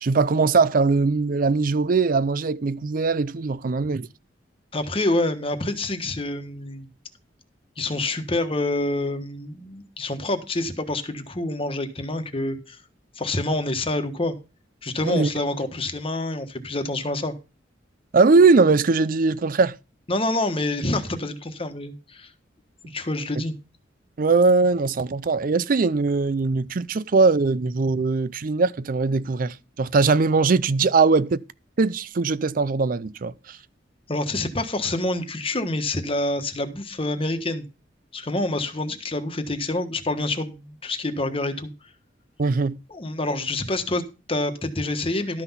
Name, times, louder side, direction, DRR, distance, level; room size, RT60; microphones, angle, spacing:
voice 1, 0.0-4.1 15.0-15.3 18.1-19.8 24.2-31.4 31.8-33.6 42.4-42.8, right 4 dB, 50° right, 0.5 m, -20 dB
voice 2, 4.7-6.9 7.8-12.8 13.2-14.3 14.8-17.3 20.1-22.3 22.8-23.5 34.1-37.6 38.1-41.7 42.9-45.4, left 2 dB, 30° left, 1.3 m, -27 dB
12.5 x 6.0 x 5.6 m
head